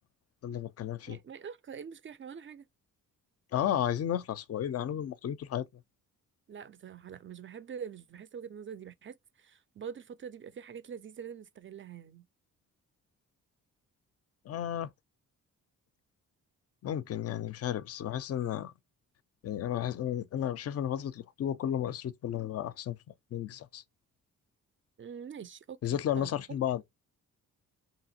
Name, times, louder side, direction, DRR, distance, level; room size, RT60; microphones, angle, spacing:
voice 1, 0.4-1.2 3.5-5.7 14.5-14.9 16.8-18.7 19.4-23.0 23.3-23.8 25.8-26.8, left 10 dB, 45° left, 0.4 m, -33 dB
voice 2, 1.1-2.7 6.5-12.3 25.0-26.3, right 7 dB, 35° right, 0.4 m, -45 dB
2.8 x 2.4 x 2.7 m
cardioid pair, 60°, 35 cm